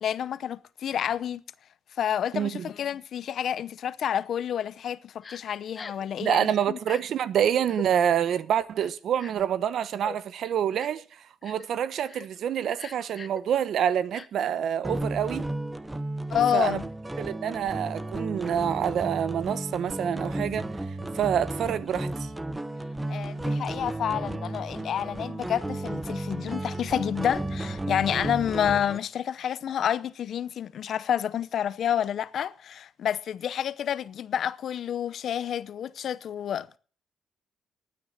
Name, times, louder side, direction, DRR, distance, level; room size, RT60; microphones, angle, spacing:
voice 1, 0.0-1.4 2.0-6.8 16.3-16.8 23.1-36.8, left 9 dB, 65° left, 0.7 m, -29 dB
voice 2, 2.3-2.7 6.2-15.5 16.5-16.8 17.2-20.7 21.1-22.3 28.1-28.3, right 9 dB, 70° right, 0.9 m, -27 dB
Crying sobbing, 5.2-5.4 5.7-6.1 6.8-7.0 7.6-7.9 8.8-9.5 10.0-10.2 10.8-11.0 11.4-11.7 12.1-12.3 12.7-13.4 14.1-14.3, left 5 dB, 35° left, 1.0 m, -42 dB
sound 1, 14.8-29.0, right 1 dB, 15° right, 1.0 m, -33 dB
12.0 x 9.5 x 7.2 m
cardioid pair, 90°, 0 cm